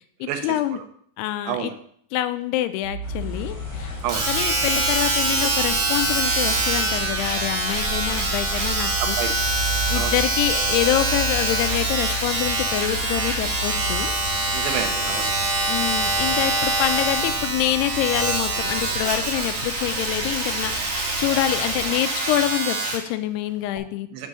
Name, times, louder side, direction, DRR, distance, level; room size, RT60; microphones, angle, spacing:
voice 1, 0.2-0.8 1.2-1.7 2.1-3.9 4.3-9.2 9.9-14.1 15.7-24.1, left 14 dB, 85° left, 11 dB, 2.5 m, -26 dB
sound 1, 2.8-22.4, right 1 dB, 35° right, 1.7 m, -35 dB
sound 2, 3.0-21.9, left 2 dB, 30° left, 2.7 m, -37 dB
Domestic sounds home sounds, 4.1-23.1 23.8-23.9, right 2 dB, 55° right, 2.5 m, -24 dB
voice 2, 9.0-9.5 9.9-10.2 14.5-15.3 24.1-24.3, right 9 dB, 90° right, 6 dB, 3.1 m, -29 dB
6.8 x 5.2 x 6.1 m, 0.63 s
omnidirectional pair, 4.8 m